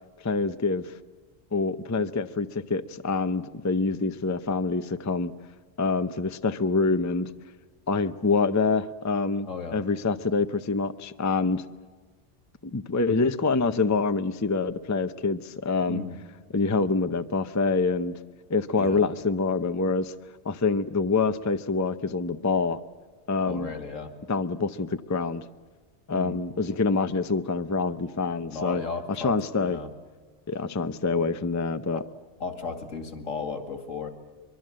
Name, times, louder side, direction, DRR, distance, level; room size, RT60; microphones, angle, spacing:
voice 1, 0.2-0.9 1.5-5.3 5.8-7.3 7.9-11.6 12.6-16.0 16.5-18.2 18.5-20.1 20.4-22.8 23.3-23.7 24.3-25.4 26.1-28.8 29.2-29.8 30.5-32.0, left 4 dB, 20° left, 11 dB, 0.5 m, -26 dB
voice 2, 9.5-9.8 15.9-16.2 18.8-19.1 23.5-24.1 26.1-26.4 28.5-29.9 31.9-32.0 32.4-34.1, left 4 dB, 80° left, 7 dB, 2.6 m, -35 dB
23.5 x 23.5 x 7.6 m, 1.4 s
omnidirectional pair, 1.3 m